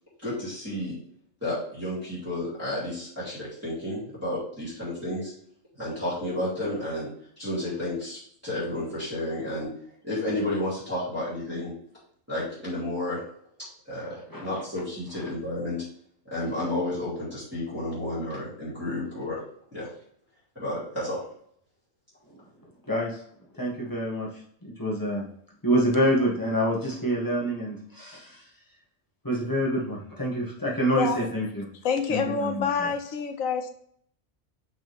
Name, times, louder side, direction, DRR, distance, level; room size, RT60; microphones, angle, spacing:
voice 1, 0.2-1.0 1.4-5.3 5.8-7.1 7.4-9.7 10.0-11.7 12.3-13.2 13.6-15.8 16.3-19.4 19.7-19.9 20.5-21.2, left 1 dB, 10° right, -12 dB, 3.0 m, -31 dB
voice 2, 23.6-24.3 24.6-25.2 25.6-28.4 29.2-31.7 32.1-32.9, equal, 15° left, -4 dB, 2.0 m, -27 dB
voice 3, 31.8-33.7, left 5 dB, 80° left, 7 dB, 1.3 m, -27 dB
6.6 x 5.8 x 3.5 m, 0.65 s
omnidirectional pair, 1.4 m